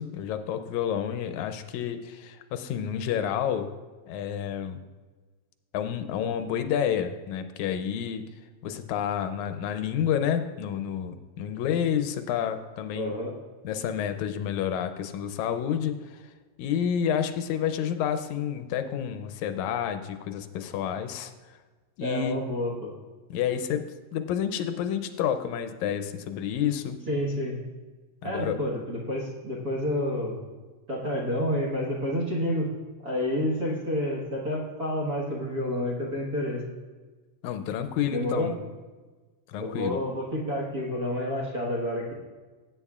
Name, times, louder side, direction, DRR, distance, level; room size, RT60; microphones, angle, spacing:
voice 1, 0.0-3.7 4.1-4.8 5.7-8.2 8.6-13.1 13.6-16.2 16.6-21.3 22.0-22.4 23.3-23.8 24.1-27.0 28.2-28.6 37.4-38.6 39.5-40.0, left 9 dB, 85° left, 8 dB, 2.0 m, -29 dB
voice 2, 12.9-13.4 22.0-22.9 27.1-27.6 28.2-30.4 30.9-32.7 33.0-36.6 38.1-38.5 39.6-42.1, left 1 dB, 40° right, -3 dB, 1.5 m, -29 dB
15.5 x 8.7 x 2.4 m, 1.3 s
omnidirectional pair, 3.3 m